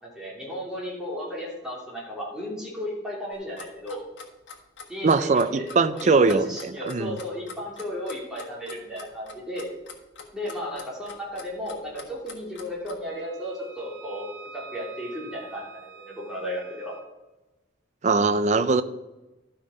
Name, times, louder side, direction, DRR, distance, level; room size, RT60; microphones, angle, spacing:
voice 1, 0.0-4.0 4.9-9.7 10.3-14.3 14.5-16.9, equal, 5° right, -5 dB, 2.8 m, -34 dB
Clock, 3.3-13.0, left 5 dB, 75° left, 1.5 m, -43 dB
voice 2, 5.0-7.2 18.0-18.8, right 4 dB, 40° right, 13 dB, 0.4 m, -21 dB
Wind instrument woodwind instrument, 13.1-17.1, right 5 dB, 75° right, 1.1 m, -46 dB
12.5 x 5.8 x 5.0 m, 1.1 s
head